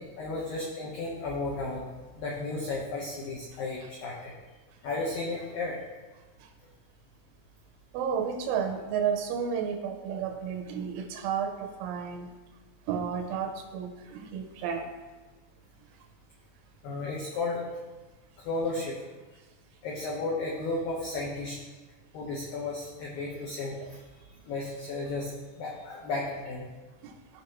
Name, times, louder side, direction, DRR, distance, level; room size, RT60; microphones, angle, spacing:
voice 1, 0.0-1.8 2.2-4.3 4.8-5.8 16.8-17.7 18.5-19.0 19.8-21.6 22.1-23.8 24.5-25.3 25.6-26.7, left 3 dB, 90° left, -4 dB, 2.0 m, -33 dB
voice 2, 7.9-12.3 12.9-14.9 23.8-23.9 27.0-27.2, right 7 dB, 85° right, 5 dB, 2.8 m, -32 dB
15.0 x 5.1 x 3.0 m, 1.2 s
omnidirectional pair, 5.7 m